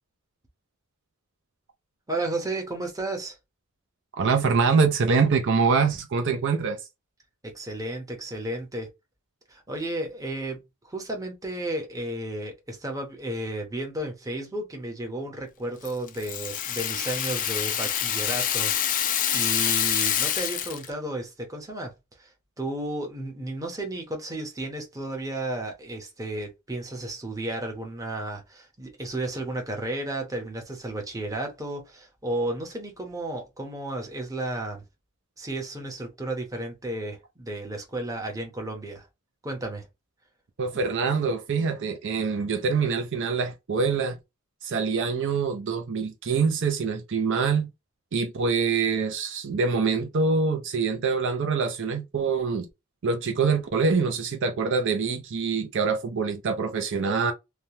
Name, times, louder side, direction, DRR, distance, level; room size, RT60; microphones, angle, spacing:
voice 1, 2.1-3.4 7.4-8.9 9.5-19.1 19.3-21.9 22.2-22.3 22.6-34.8 35.4-39.1 39.4-39.8, right 1 dB, 15° right, 0.8 m, -33 dB
voice 2, 4.2-6.8 40.6-44.2 44.6-47.7 48.1-52.7 53.0-57.3, right 5 dB, 60° right, 0.5 m, -25 dB
Rattle (instrument), 15.8-20.9, left 10 dB, 40° left, 0.4 m, -26 dB
3.3 x 2.2 x 2.7 m
head